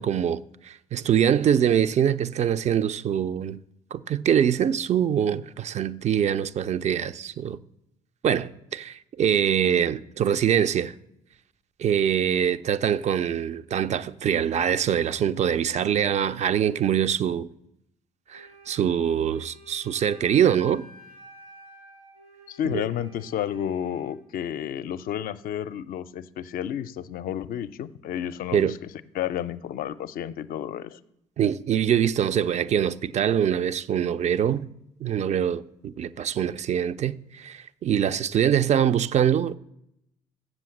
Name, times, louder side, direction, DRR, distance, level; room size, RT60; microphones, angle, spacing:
voice 1, 0.0-3.6 3.9-7.6 8.2-10.9 11.8-17.5 18.3-20.9 22.6-22.8 28.5-28.7 31.4-34.7 35.0-39.6, right 9 dB, 40° right, 0.4 m, -24 dB
Wind instrument woodwind instrument, 18.3-24.2, equal, 80° right, 3.5 m, -50 dB
voice 2, 22.5-28.8 29.1-31.0, left 10 dB, 60° left, 0.5 m, -31 dB
7.6 x 6.2 x 7.6 m
hypercardioid pair, 55°, 17 cm